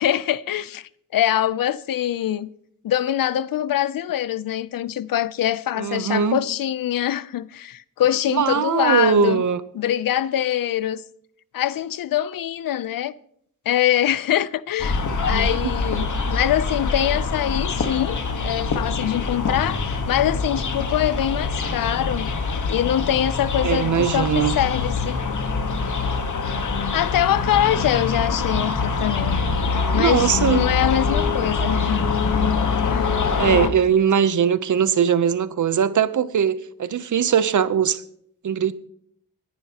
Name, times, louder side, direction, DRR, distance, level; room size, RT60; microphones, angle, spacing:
voice 1, 0.0-2.5 2.8-9.4 9.7-11.0 11.5-13.1 13.7-15.0 15.3-22.3 22.7-25.2 26.9-29.4 29.9-32.1 32.9-33.3, left 11 dB, 80° left, 0.6 m, -23 dB
voice 2, 5.8-6.4 8.3-9.6 15.3-15.7 23.6-24.6 29.9-30.7 33.4-38.0 38.4-38.7, right 7 dB, 60° right, 0.8 m, -20 dB
sound 1, 14.8-33.7, left 4 dB, 60° left, 1.4 m, -24 dB
26.0 x 10.5 x 2.9 m
cardioid pair, 80°, 33 cm